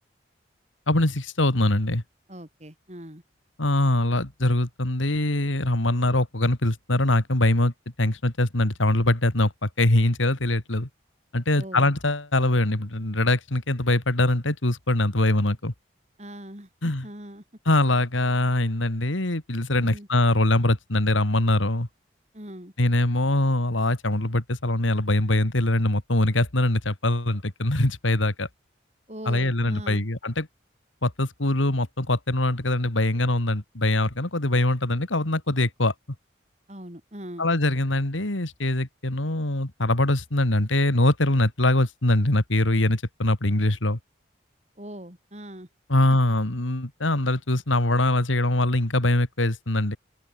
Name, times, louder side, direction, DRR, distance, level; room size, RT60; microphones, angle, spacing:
voice 1, 0.9-2.0 3.6-7.7 8.0-10.9 11.3-15.7 16.8-17.1 17.7-21.9 22.8-28.5 29.3-30.5 31.0-35.9 37.4-44.0 45.9-50.0, left 1 dB, 90° left, 2.7 m, -23 dB
voice 2, 2.3-3.2 11.6-11.9 16.2-17.4 19.8-20.1 22.3-22.7 29.1-30.0 36.7-37.5 44.8-45.7, equal, 35° right, 6.3 m, -41 dB
open air
head